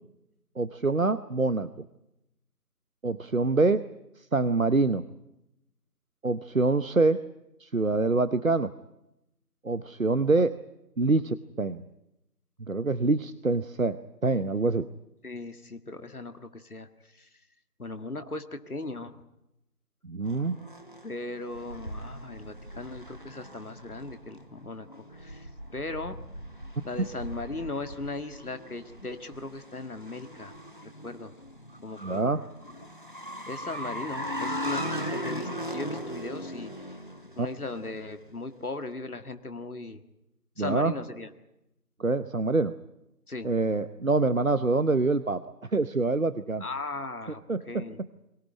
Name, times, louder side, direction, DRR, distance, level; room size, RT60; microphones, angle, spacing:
voice 1, 0.6-1.7 3.0-3.8 4.3-5.0 6.2-7.2 7.6-8.7 9.6-10.5 11.0-11.8 12.6-14.9 20.0-20.6 32.0-32.4 37.4-37.5 40.6-40.9 42.0-42.7 43.4-45.4 45.7-46.6 47.5-48.1, right 3 dB, 55° right, 14 dB, 0.9 m, -25 dB
voice 2, 15.2-16.9 17.1-17.3 17.8-19.1 21.0-26.2 26.8-30.5 30.8-31.3 31.8-32.5 33.5-36.9 37.4-40.0 40.6-41.3 43.3-43.5 46.6-47.4 47.7-48.0, left 2 dB, 65° left, 8 dB, 1.9 m, -38 dB
sound 1, 20.2-38.3, equal, 30° left, 1.5 m, -39 dB
23.5 x 18.0 x 9.9 m, 0.88 s
figure-of-eight pair, 175°, 48 cm